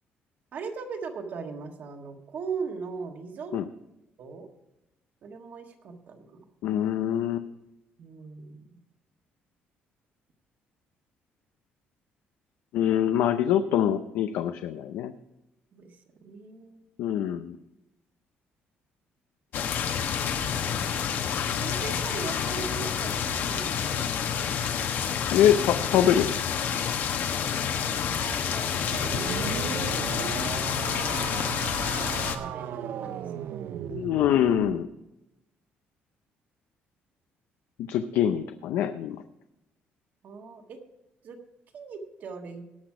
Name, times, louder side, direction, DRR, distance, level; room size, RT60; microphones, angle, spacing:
voice 1, 0.5-3.5 4.2-4.5 5.2-6.4 8.0-8.7 15.7-16.8 20.5-24.4 27.4-30.6 32.4-33.6 40.2-40.8 41.2-41.4 41.7-42.6, right 5 dB, 50° right, 4 dB, 1.6 m, -40 dB
voice 2, 6.6-7.5 12.7-15.1 17.0-17.6 25.3-26.3 33.9-34.9 37.8-39.2, left 10 dB, 90° left, 9 dB, 0.6 m, -24 dB
sound 1, 19.5-32.4, left 7 dB, 60° left, 1.1 m, -29 dB
sound 2, 28.9-34.8, right 10 dB, 65° right, 0.6 m, -36 dB
18.0 x 6.1 x 4.8 m, 0.92 s
cardioid pair, 160°, 4 cm